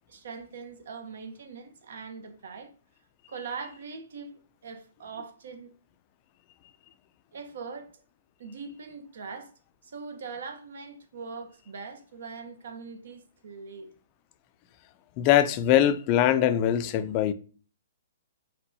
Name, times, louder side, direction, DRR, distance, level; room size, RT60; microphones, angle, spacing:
voice 1, 0.1-2.7 3.3-5.7 7.3-7.9 8.4-9.5 9.8-13.9, right 5 dB, 70° right, 0.9 m, -41 dB
voice 2, 15.2-17.3, left 11 dB, 30° left, 0.4 m, -22 dB
4.4 x 4.0 x 2.7 m
hypercardioid pair, 150°, 0 cm